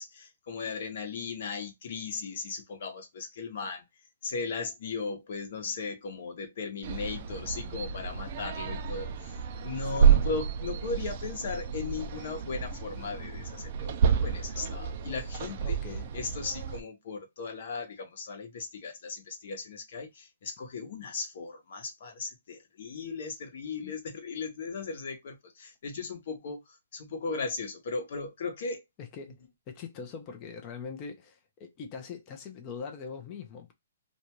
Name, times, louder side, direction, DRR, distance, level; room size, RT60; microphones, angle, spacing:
voice 1, 0.0-3.8 4.2-9.4 9.6-15.8 16.1-26.6 26.9-28.8, left 4 dB, 50° left, 1.0 m, -37 dB
sound 1, 6.8-16.8, right 7 dB, 40° right, 0.4 m, -29 dB
voice 2, 15.6-16.1 23.8-23.9 29.0-29.4 29.7-33.7, left 5 dB, 25° left, 0.6 m, -42 dB
2.6 x 2.3 x 2.9 m
hypercardioid pair, 165°, 0 cm